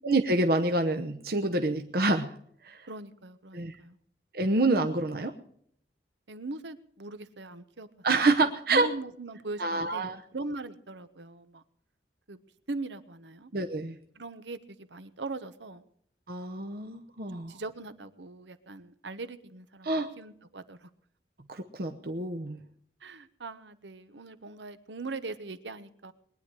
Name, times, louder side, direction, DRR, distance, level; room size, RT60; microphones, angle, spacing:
voice 1, 0.0-2.4 2.6-2.9 3.5-3.8 4.3-5.3 8.0-8.9 9.6-10.2 13.5-14.0 16.3-17.6 19.8-20.1 21.5-22.6, right 2 dB, 55° right, 6 dB, 0.9 m, -27 dB
voice 2, 2.9-4.0 6.3-7.9 8.4-10.1 10.3-11.6 12.3-12.4 12.7-13.5 14.1-15.8 17.5-19.9 20.2-20.9 23.0-26.1, right 3 dB, 80° right, 12 dB, 1.1 m, -40 dB
21.5 x 10.0 x 4.8 m, 0.64 s
head